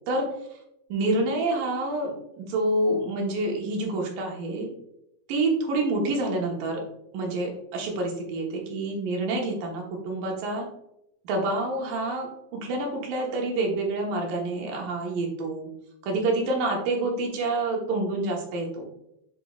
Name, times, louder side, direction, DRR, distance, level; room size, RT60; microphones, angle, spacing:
voice 1, 0.9-4.7 5.3-6.8 7.1-10.7 11.2-15.7 16.0-18.8, right 2 dB, 65° right, 0 dB, 2.4 m, -27 dB
8.1 x 4.8 x 2.4 m, 0.81 s
omnidirectional pair, 4.9 m